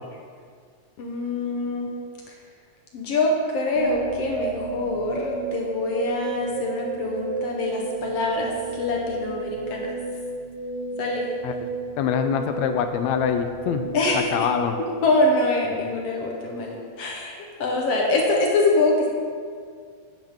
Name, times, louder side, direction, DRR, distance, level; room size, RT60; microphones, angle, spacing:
voice 1, 1.0-1.9 2.9-9.9 11.0-11.3 13.9-14.3 14.8-19.1, left 2 dB, 65° left, -1 dB, 1.9 m, -24 dB
sound 1, 3.7-15.8, right 5 dB, 85° right, 2.4 m, -33 dB
voice 2, 12.0-13.9 14.1-14.8, left 8 dB, 80° left, 8 dB, 1.8 m, -24 dB
11.0 x 9.4 x 3.7 m, 2.1 s
omnidirectional pair, 3.3 m